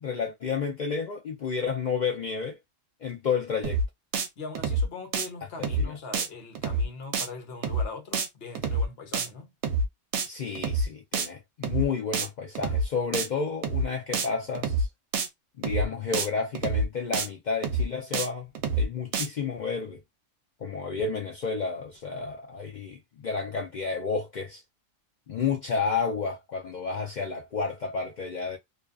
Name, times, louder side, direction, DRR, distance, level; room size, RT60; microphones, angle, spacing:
voice 1, 0.0-2.6 3.0-3.8 5.6-6.0 10.3-14.9 15.6-20.0 20.6-24.6 25.3-28.6, left 5 dB, 75° left, 0.4 m, -31 dB
sound 1, 3.6-3.9 4.1-4.3 4.5-4.9 5.1-5.3 5.6-5.9 6.1-6.3 6.5-6.9 7.1-7.3 7.6-7.9 8.1-8.3 8.5-8.9 9.1-9.3 9.6-9.9 10.1-10.3 10.5-10.9 11.1-11.3 11.6-11.9 12.1-12.3 12.5-12.9 13.1-13.3 13.6-13.9 14.1-14.3 14.5-14.9 15.1-15.3 15.6-15.9 16.1-16.3 16.5-16.9 17.1-17.3 17.6-17.9 18.1-18.3 18.5-18.9 19.1-19.3, right 3 dB, 70° right, 0.9 m, -27 dB
voice 2, 4.4-9.5, left 4 dB, 55° left, 0.9 m, -41 dB
2.5 x 2.3 x 2.3 m
omnidirectional pair, 1.3 m